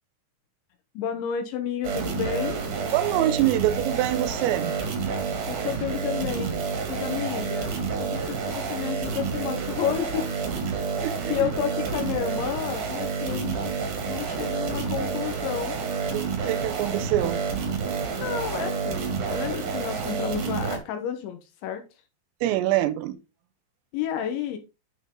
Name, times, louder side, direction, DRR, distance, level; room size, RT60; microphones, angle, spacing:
voice 1, 0.9-2.6 5.5-7.7 8.0-10.3 11.3-13.7 14.0-15.7 18.2-21.8 23.9-24.6, left 9 dB, 75° left, 3.2 m, -31 dB
sound 1, 1.8-20.8, right 5 dB, 50° right, 2.9 m, -29 dB
voice 2, 2.9-4.7 10.7-11.5 16.1-17.4 22.4-23.2, right 14 dB, 85° right, 3.4 m, -25 dB
10.5 x 6.1 x 3.7 m
omnidirectional pair, 5.9 m